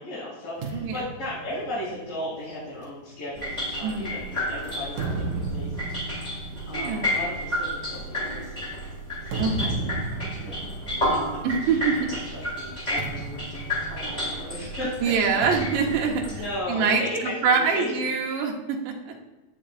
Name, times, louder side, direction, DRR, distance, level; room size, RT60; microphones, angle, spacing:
voice 1, 0.0-5.9 6.2-6.3 6.7-8.9 9.2-9.6 10.3-10.8 11.1-11.3 11.6-12.0 12.3-15.5 16.3-18.1, left 1 dB, 50° left, -12 dB, 5.7 m, -36 dB
sound 1, 0.6-4.2 4.7-12.2 12.4-12.6 13.0-14.6 15.4-17.2, right 3 dB, 75° right, 1.7 m, -35 dB
sound 2, 3.3-16.6, equal, 15° left, 1.9 m, -31 dB
voice 2, 3.8-4.2 6.7-7.2 9.4-9.8 11.4-12.1 15.0-19.1, right 5 dB, 90° right, 0 dB, 3.5 m, -25 dB
16.0 x 9.9 x 2.5 m, 1.2 s
omnidirectional pair, 4.9 m